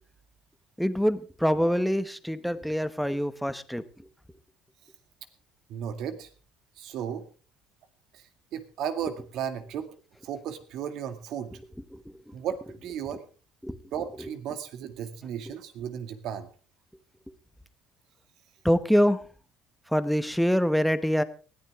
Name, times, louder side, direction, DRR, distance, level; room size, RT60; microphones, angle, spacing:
voice 1, 0.8-3.9 11.9-12.3 13.6-13.8 14.2-14.3 15.5-15.6 18.6-19.2 19.9-21.2, equal, ahead, 12 dB, 1.0 m, -25 dB
voice 2, 5.7-6.3 6.8-7.2 8.1-8.2 8.5-9.9 10.2-11.5 12.3-13.2 13.9-16.5, right 8 dB, 60° right, 9 dB, 2.1 m, -34 dB
20.0 x 14.5 x 3.6 m, 0.38 s
cardioid pair, 145°, 0 cm